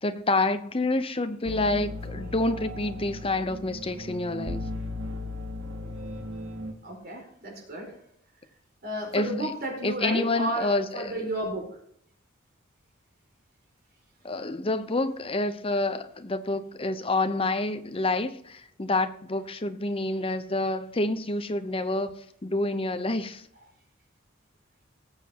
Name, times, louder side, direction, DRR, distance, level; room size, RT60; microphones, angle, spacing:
voice 1, 0.0-4.6 9.1-9.5 9.8-11.1 14.2-23.5, left 2 dB, 30° left, 0.8 m, -28 dB
sound 1, 1.5-6.7, left 1 dB, 80° right, 2.2 m, -36 dB
voice 2, 6.8-7.9 8.8-11.7, right 1 dB, 50° right, 4.7 m, -32 dB
19.5 x 7.5 x 2.9 m
head